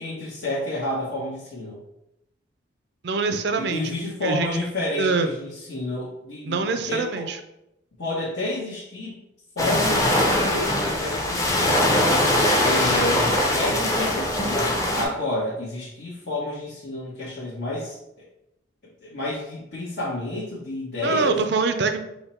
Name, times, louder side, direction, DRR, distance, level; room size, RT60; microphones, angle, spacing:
voice 1, 0.0-1.8 3.5-6.6 6.9-7.3 8.0-9.1 9.5-12.1 12.6-18.3 19.0-21.4, left 1 dB, 65° left, -9 dB, 1.2 m, -30 dB
voice 2, 3.0-3.9 4.2-4.5 5.0-5.3 6.4-7.4 21.0-22.0, right 4 dB, 55° right, 8 dB, 0.4 m, -24 dB
sound 1, 9.6-15.0, left 1 dB, 15° left, 0.6 m, -21 dB
5.5 x 2.2 x 4.3 m, 0.85 s
head